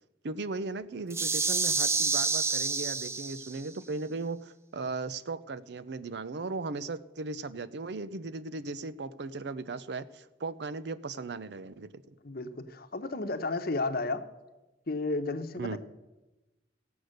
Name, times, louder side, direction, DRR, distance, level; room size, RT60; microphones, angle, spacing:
voice 1, 0.2-12.1 15.6-15.8, right 3 dB, 65° right, 15 dB, 0.6 m, -37 dB
sound 1, 1.1-3.7, right 4 dB, 15° right, 0.5 m, -28 dB
voice 2, 12.2-14.2 14.9-15.8, left 3 dB, 55° left, 9 dB, 0.9 m, -32 dB
16.5 x 7.9 x 6.5 m, 1.1 s
head